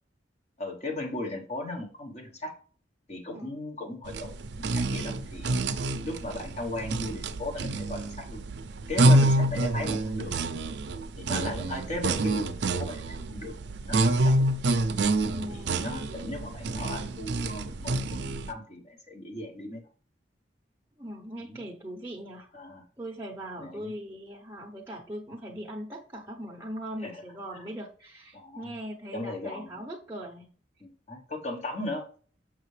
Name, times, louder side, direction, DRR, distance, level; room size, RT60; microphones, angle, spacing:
voice 1, 0.6-2.5 3.1-5.6 6.0-8.4 8.9-10.4 11.2-13.6 13.8-14.3 15.5-19.8 21.4-21.6 22.5-22.8 23.6-23.9 27.0-27.2 27.5-27.6 28.3-28.7 29.1-29.8 30.8-32.0, left 1 dB, 40° left, 3 dB, 1.0 m, -37 dB
sound 1, 4.1-18.5, right 2 dB, 65° right, 0.5 m, -27 dB
voice 2, 15.1-15.8 21.0-22.5 23.0-30.5, equal, 15° right, -1 dB, 0.7 m, -40 dB
6.6 x 5.8 x 3.2 m, 0.42 s
head